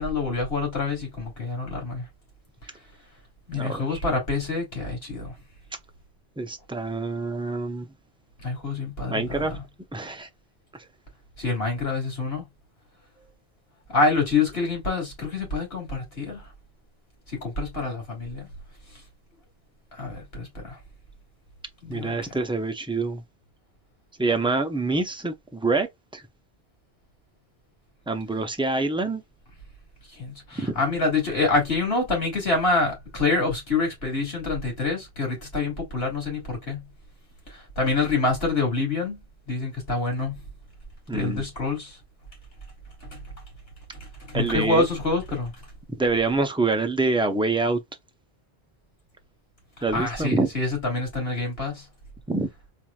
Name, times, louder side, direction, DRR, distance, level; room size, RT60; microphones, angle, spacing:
voice 1, 0.0-2.0 3.5-5.3 8.4-9.6 11.4-12.4 13.9-16.5 17.3-18.5 20.0-20.8 21.8-22.1 30.1-36.8 37.5-39.2 39.5-40.4 41.1-42.0 44.3-45.5 49.9-51.8, left 3 dB, 80° left, 2.8 m, -26 dB
voice 2, 3.5-4.0 6.4-7.9 9.1-9.5 9.9-10.3 21.9-23.2 24.2-25.9 26.1-26.2 28.1-29.2 30.6-30.7 41.1-41.4 44.3-44.8 46.0-47.8 49.8-50.5 52.3-52.5, right 3 dB, 5° right, 0.6 m, -26 dB
4.2 x 3.1 x 2.3 m
omnidirectional pair, 1.0 m